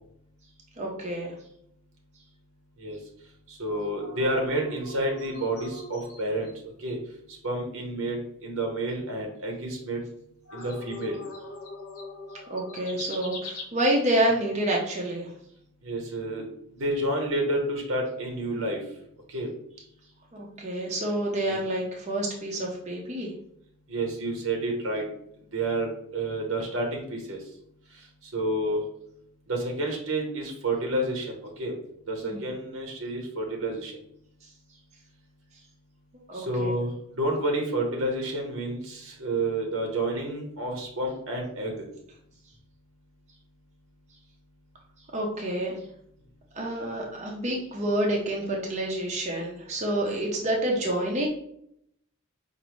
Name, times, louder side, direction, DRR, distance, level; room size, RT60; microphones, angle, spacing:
voice 1, 0.8-1.3 12.5-15.3 20.3-23.3 32.2-32.4 36.3-36.7 45.1-45.8 46.5-51.3, right 1 dB, 30° right, -1 dB, 0.6 m, -28 dB
voice 2, 3.5-6.5 6.8-7.0 7.4-10.0 10.5-11.2 15.8-16.4 16.7-18.8 19.3-19.5 21.5-21.6 23.9-25.0 25.5-27.4 28.3-28.8 29.5-31.3 31.6-31.7 32.1-33.9 36.3-36.9 37.2-41.7, right 1 dB, 65° right, 1 dB, 0.9 m, -29 dB
sound 1, 3.7-6.5 6.9-7.0 7.3-7.4 10.5-13.6, left 3 dB, 85° left, 1.1 m, -42 dB
5.1 x 2.6 x 3.0 m, 0.72 s
head